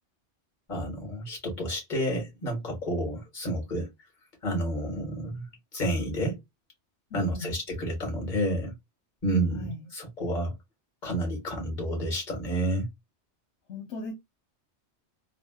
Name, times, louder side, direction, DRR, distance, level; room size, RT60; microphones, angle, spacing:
voice 1, 0.7-3.9 4.4-5.4 5.7-6.4 7.1-8.7 9.2-10.5 11.0-12.8, right 1 dB, 45° left, 1.6 m, -30 dB
voice 2, 7.1-7.6 9.5-9.9 13.7-14.1, left 2 dB, 80° left, 1.2 m, -38 dB
3.4 x 2.3 x 2.2 m
omnidirectional pair, 1.2 m